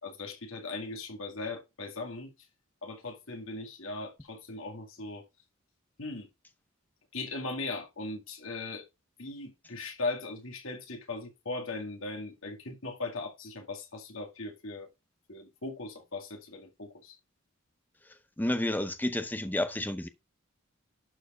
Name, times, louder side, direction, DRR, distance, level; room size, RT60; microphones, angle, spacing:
voice 1, 0.0-2.3 2.8-5.3 6.0-6.3 7.1-8.9 9.2-14.9 15.3-17.2, left 3 dB, 70° left, 2.1 m, -38 dB
voice 2, 18.4-20.1, left 1 dB, 10° left, 0.7 m, -30 dB
11.5 x 4.6 x 4.9 m
head